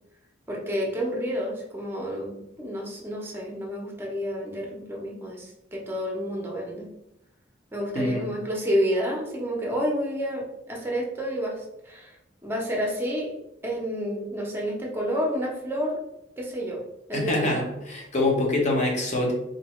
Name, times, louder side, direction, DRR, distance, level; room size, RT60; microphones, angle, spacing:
voice 1, 0.5-6.9 7.7-12.2 12.4-13.3 13.6-16.0 16.4-16.8 17.1-17.7, equal, 15° right, -2 dB, 0.8 m, -29 dB
voice 2, 17.1-19.3, left 2 dB, 40° left, -1 dB, 0.9 m, -25 dB
3.8 x 2.6 x 3.1 m, 0.86 s
head